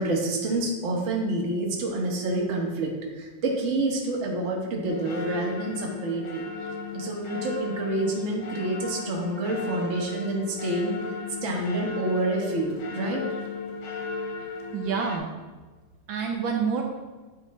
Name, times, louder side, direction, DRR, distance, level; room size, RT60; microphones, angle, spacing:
voice 1, 0.0-2.9 3.2-6.4 6.9-11.0 11.4-13.2, right 2 dB, 45° right, -1 dB, 1.1 m, -28 dB
sound 1, 4.9-15.2, left 4 dB, 85° left, 1.6 m, -36 dB
voice 2, 14.7-15.3 16.1-16.8, right 6 dB, 75° right, 1 dB, 1.3 m, -27 dB
8.9 x 3.0 x 4.2 m, 1.3 s
omnidirectional pair, 2.3 m